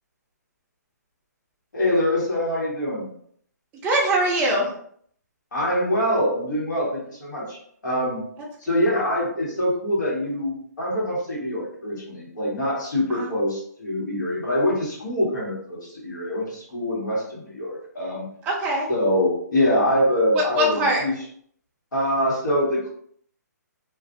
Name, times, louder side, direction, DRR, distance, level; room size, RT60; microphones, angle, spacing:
voice 1, 1.7-3.1 5.5-7.6 7.8-8.3 8.6-18.2 18.9-21.1 21.9-22.9, left 1 dB, 85° left, -5 dB, 1.4 m, -24 dB
voice 2, 3.8-4.7 13.1-13.3 18.4-18.9 20.3-21.0, right 1 dB, 15° right, -2 dB, 0.5 m, -22 dB
2.5 x 2.4 x 2.5 m, 0.64 s
hypercardioid pair, 155°, 10 cm